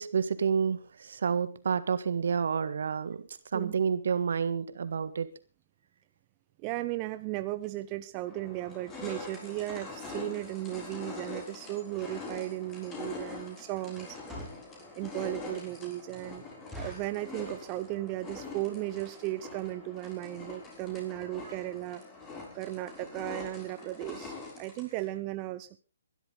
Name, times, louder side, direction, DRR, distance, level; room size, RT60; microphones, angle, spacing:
voice 1, 0.0-3.3 3.5-5.3, right 6 dB, 65° right, 13 dB, 1.6 m, -29 dB
voice 2, 6.6-14.2 15.0-16.5 16.8-22.0 22.5-25.8, right 17 dB, 30° right, 11 dB, 0.7 m, -36 dB
sound 1, 7.6-7.7 8.3-25.1, left 3 dB, 20° left, 6.2 m, -44 dB
sound 2, 14.3-14.7 15.2-15.3 15.7-15.8 16.1-16.2 16.7-17.2 17.8-18.1 18.4-18.5 18.7-18.9 19.5-19.6 19.8-20.0 20.3-20.4 20.6-20.7, left 1 dB, ahead, 6.0 m, -44 dB
22.0 x 12.0 x 3.9 m, 0.34 s
hypercardioid pair, 140°, 0 cm